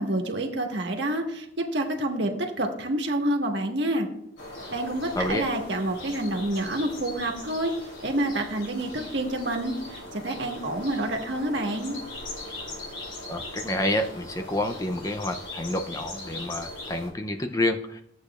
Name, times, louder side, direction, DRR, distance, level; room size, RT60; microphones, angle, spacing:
voice 1, 0.0-4.1 4.7-7.7 8.0-12.0, right 1 dB, 65° right, 2 dB, 1.4 m, -28 dB
sound 1, 4.4-17.1, left 1 dB, 85° left, 3.0 m, -40 dB
voice 2, 5.2-5.5 13.3-18.0, left 1 dB, 15° left, 7 dB, 0.4 m, -28 dB
14.0 x 8.2 x 2.4 m, 0.74 s
head